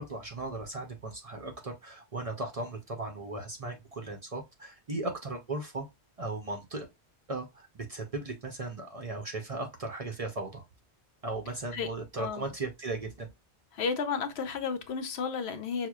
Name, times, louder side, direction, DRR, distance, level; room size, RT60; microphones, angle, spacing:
voice 1, 0.0-5.9 6.2-6.9 7.3-10.6 11.2-13.3, right 2 dB, 40° right, 0.6 m, -37 dB
voice 2, 12.2-12.5 13.7-15.9, left 5 dB, 75° left, 0.9 m, -32 dB
6.1 x 2.1 x 2.2 m
omnidirectional pair, 1.1 m